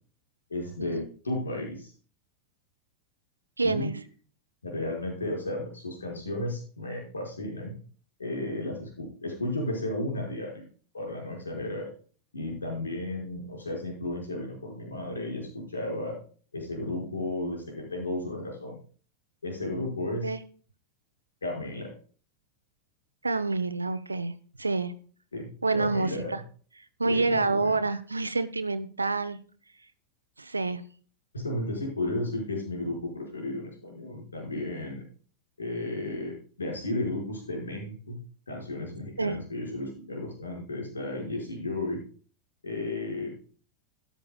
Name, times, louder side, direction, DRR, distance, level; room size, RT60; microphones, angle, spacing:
voice 1, 0.5-1.9 3.6-3.9 4.6-7.8 8.2-10.6 10.9-11.9 12.3-16.2 16.5-18.8 19.4-20.3 21.4-21.9 25.3-26.4 27.0-27.7 31.3-35.0 35.6-38.2 38.5-42.0 42.6-43.4, left 1 dB, 75° left, 0 dB, 5.3 m, -33 dB
voice 2, 3.6-3.9 20.2-20.4 23.2-24.3 24.6-24.9 25.6-26.4 27.0-29.4 30.4-30.8 39.2-39.4, right 3 dB, 80° right, 11 dB, 0.7 m, -27 dB
13.5 x 11.0 x 2.3 m, 0.41 s
figure-of-eight pair, 90°, 0 cm